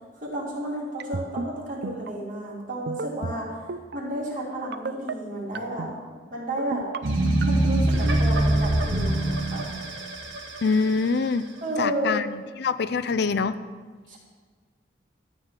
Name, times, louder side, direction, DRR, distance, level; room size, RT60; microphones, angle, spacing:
voice 1, 0.2-3.6 3.9-5.9 6.3-6.9 7.4-9.7 11.6-12.2 14.1-14.2, right 1 dB, 45° right, -4 dB, 3.2 m, -32 dB
sound 1, 1.0-1.5 1.8-2.1 2.9-3.4 3.7-4.0 4.7-5.1 5.5-5.9 6.6-7.0 7.4-7.7, right 4 dB, 60° right, 0.5 m, -31 dB
sound 2, 7.0-11.4, right 1 dB, 80° right, 1.9 m, -24 dB
voice 2, 10.6-11.5 11.8-12.3 12.6-13.6, left 4 dB, 60° left, 13 dB, 0.5 m, -24 dB
13.0 x 4.9 x 8.9 m, 1.5 s
head